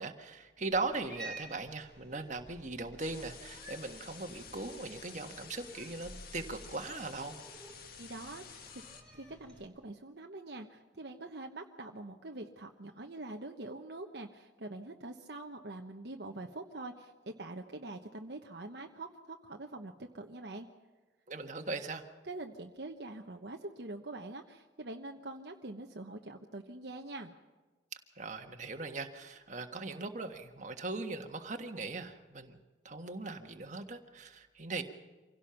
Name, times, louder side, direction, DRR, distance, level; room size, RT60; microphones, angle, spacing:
voice 1, 0.0-7.4 21.3-22.1 28.1-32.6 32.8-34.8, right 3 dB, 40° right, 5 dB, 1.5 m, -39 dB
Cat, 0.7-9.7, right 1 dB, 5° left, 4.0 m, -52 dB
sound 1, 3.0-9.0, left 6 dB, 50° left, 1.8 m, -51 dB
voice 2, 8.0-8.8 9.1-20.7 22.2-27.3, right 2 dB, 60° right, 3 dB, 1.1 m, -44 dB
26.0 x 17.0 x 5.8 m, 1.3 s
head